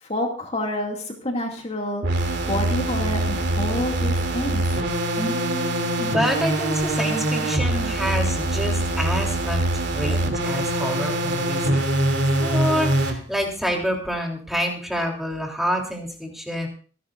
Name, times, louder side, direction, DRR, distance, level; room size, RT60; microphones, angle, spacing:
voice 1, 0.0-2.0 2.5-4.7, left 1 dB, 35° left, 1 dB, 2.4 m, -28 dB
sound 1, 2.0-13.2, right 1 dB, 60° right, 2.8 m, -23 dB
voice 2, 5.2-11.8 12.4-16.7, equal, ahead, 1 dB, 3.4 m, -27 dB
26.0 x 12.0 x 2.6 m, 0.39 s
head